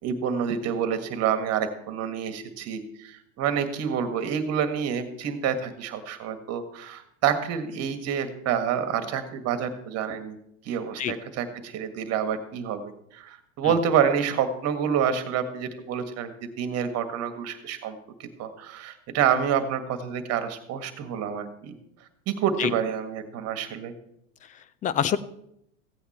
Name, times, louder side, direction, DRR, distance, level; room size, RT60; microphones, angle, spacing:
voice 1, 0.0-10.4 10.6-21.7 22.3-23.9, right 8 dB, 40° right, 9 dB, 1.7 m, -28 dB
voice 2, 24.4-25.2, left 9 dB, 20° left, 16 dB, 0.4 m, -27 dB
15.5 x 8.8 x 4.3 m, 0.76 s
hypercardioid pair, 110°, 40 cm